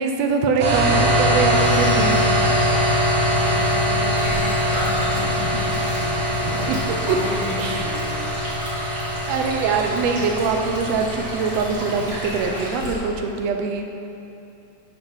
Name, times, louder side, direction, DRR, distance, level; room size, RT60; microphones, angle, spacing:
voice 1, 0.0-2.2 6.5-6.8 7.1-7.2 7.6-7.8 9.3-13.9, right 5 dB, 80° right, 4 dB, 1.5 m, -23 dB
sound 1, 0.6-12.7, equal, 65° right, 2.5 m, -22 dB
Fireworks, 1.4-7.5, left 1 dB, 55° left, 2.9 m, -40 dB
voice 2, 1.9-2.7 3.3-6.7 7.1-8.0, left 3 dB, 80° left, -4 dB, 3.1 m, -33 dB
Stream, 4.1-12.9, equal, 35° right, 2.3 m, -34 dB
12.0 x 4.9 x 5.6 m, 2.8 s
omnidirectional pair, 3.7 m